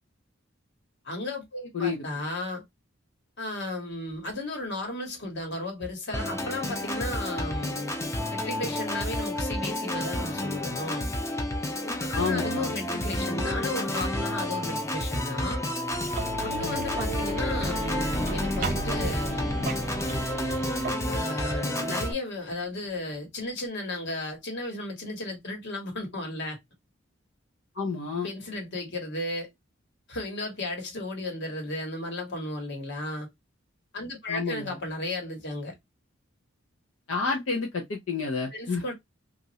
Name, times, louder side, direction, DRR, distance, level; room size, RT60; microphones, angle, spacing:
voice 1, 1.0-2.6 3.4-7.9 8.3-11.1 11.8-15.6 16.4-19.8 21.1-26.6 28.2-29.5 30.1-33.3 33.9-35.7 38.5-38.9, left 2 dB, 60° left, 1.3 m, -34 dB
Organ, 6.1-22.1, left 1 dB, 15° left, 0.5 m, -30 dB
voice 2, 12.1-12.7 27.7-28.3 34.3-34.8 37.1-38.8, left 4 dB, 85° left, 0.7 m, -29 dB
sound 1, 15.9-20.9, right 3 dB, 45° right, 0.5 m, -34 dB
3.0 x 2.5 x 2.7 m
head